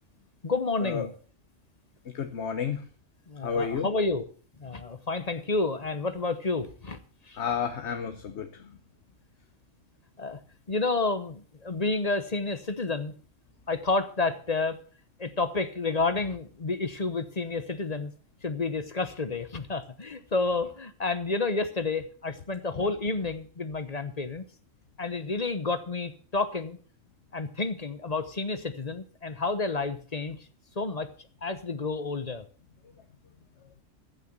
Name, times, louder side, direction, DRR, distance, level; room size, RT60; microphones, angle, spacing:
voice 1, 0.4-1.1 3.3-4.2 4.6-7.0 7.2-7.4 10.2-10.4 10.7-13.1 13.7-14.8 15.2-18.1 18.4-24.4 25.0-26.8 27.3-30.4 30.8-31.1 31.4-32.4, left 3 dB, 35° left, 12 dB, 1.0 m, -30 dB
voice 2, 2.1-2.8 3.4-3.9 7.4-8.7, left 6 dB, 60° left, 8 dB, 1.2 m, -31 dB
15.0 x 7.0 x 7.2 m, 0.42 s
omnidirectional pair, 1.3 m